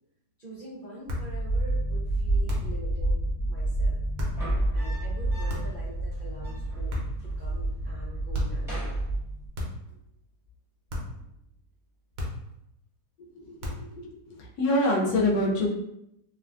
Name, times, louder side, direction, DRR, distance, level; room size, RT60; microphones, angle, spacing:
voice 1, 0.4-3.2 3.5-4.0 4.7-9.0 9.9-10.0, equal, 85° right, -8 dB, 0.4 m, -45 dB
sound 1, 1.0-9.5, right 2 dB, 40° left, 0.8 m, -29 dB
sound 2, 1.1-1.4 2.5-2.8 4.2-4.4 5.5-5.9 6.9-7.3 8.3-8.7 9.5-9.9 10.9-11.2 12.2-12.6 13.6-14.0, left 1 dB, 70° right, 1.2 m, -34 dB
sound 3, 4.2-5.8 6.1-6.2 6.4-7.4 7.7-8.0 8.4-9.8 11.0-11.4, right 1 dB, ahead, 0.8 m, -36 dB
voice 2, 13.3-14.0 14.3-15.7, left 1 dB, 70° left, -2 dB, 1.1 m, -26 dB
3.2 x 2.2 x 2.4 m, 0.81 s
omnidirectional pair, 1.9 m